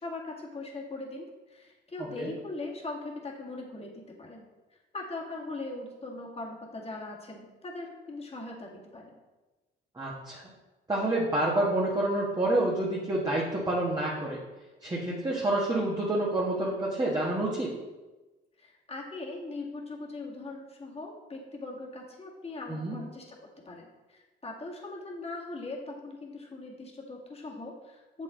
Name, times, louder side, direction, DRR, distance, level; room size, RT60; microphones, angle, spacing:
voice 1, 0.0-4.5 4.9-9.2 18.6-23.2 23.6-28.2, left 2 dB, 30° left, -1 dB, 1.8 m, -40 dB
voice 2, 10.0-10.4 10.9-14.4 14.8-17.7 22.7-23.0, right 1 dB, 20° right, -4 dB, 1.3 m, -28 dB
7.0 x 5.6 x 3.7 m, 1.2 s
cardioid pair, 90°, 20 cm